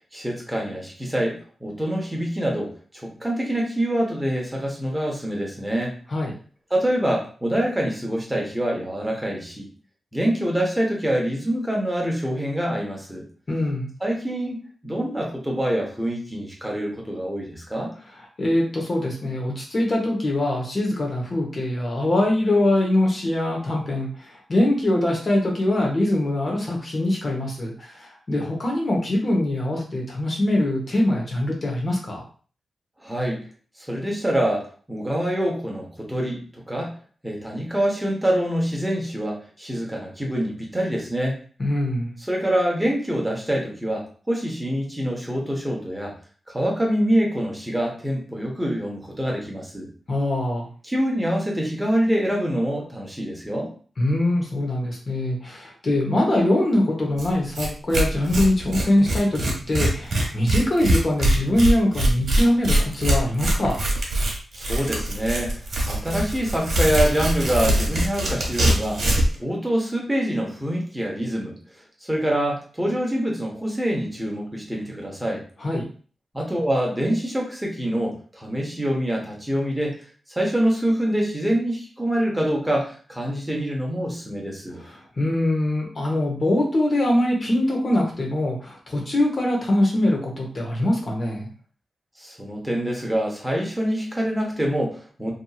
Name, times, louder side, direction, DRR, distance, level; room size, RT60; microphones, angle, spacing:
voice 1, 0.0-5.9 6.7-9.7 10.1-13.2 14.0-14.6 14.8-17.9 33.0-33.4 33.9-36.9 37.2-41.4 42.3-46.1 46.5-49.9 50.8-53.7 64.5-65.6 65.8-69.0 69.4-71.5 72.1-75.4 76.3-80.0 80.3-84.8 92.2-95.3, right 1 dB, 10° right, -1 dB, 0.8 m, -25 dB
voice 2, 13.5-13.9 18.4-32.2 41.6-42.1 50.1-50.7 54.0-63.8 75.6-75.8 84.8-91.5, left 1 dB, 45° left, -1 dB, 0.9 m, -23 dB
Tearing, 57.2-57.3 57.5-57.7 57.9-69.3, right 1 dB, 60° right, 1.0 m, -22 dB
2.9 x 2.6 x 2.3 m, 0.41 s
cardioid pair, 85°, 0 cm